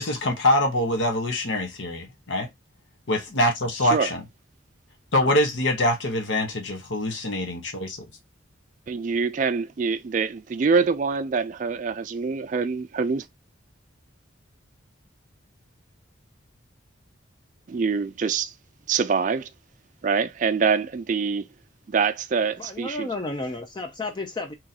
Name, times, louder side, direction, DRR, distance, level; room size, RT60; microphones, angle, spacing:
voice 1, 0.0-2.5 3.1-4.2 5.1-8.1, left 1 dB, 70° left, 1.1 m, -24 dB
voice 2, 8.9-13.2 17.7-18.5 18.9-19.5 20.0-21.5 21.9-23.1, right 5 dB, 40° right, 0.3 m, -25 dB
voice 3, 22.6-24.5, left 2 dB, 25° left, 0.4 m, -32 dB
3.8 x 3.0 x 2.7 m
head